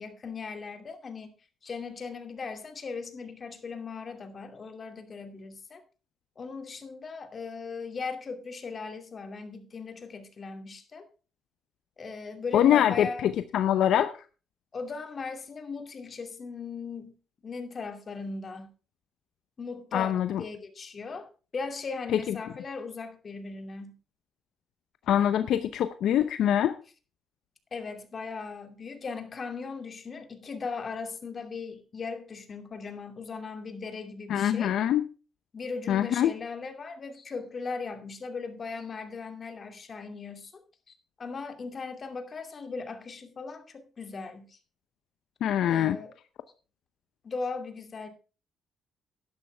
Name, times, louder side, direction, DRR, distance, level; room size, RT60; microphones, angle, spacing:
voice 1, 0.0-1.3 1.6-5.8 6.4-11.1 12.0-13.2 14.7-17.1 17.4-18.7 19.6-24.0 27.7-34.7 35.5-44.6 45.6-46.1 47.2-48.1, left 4 dB, 40° left, 2.6 m, -38 dB
voice 2, 12.5-14.1 19.9-20.4 22.1-22.4 25.1-26.7 34.3-35.0 35.9-36.4 45.4-46.0, left 10 dB, 75° left, 0.7 m, -24 dB
11.5 x 11.5 x 3.4 m
cardioid pair, 90°, 0 cm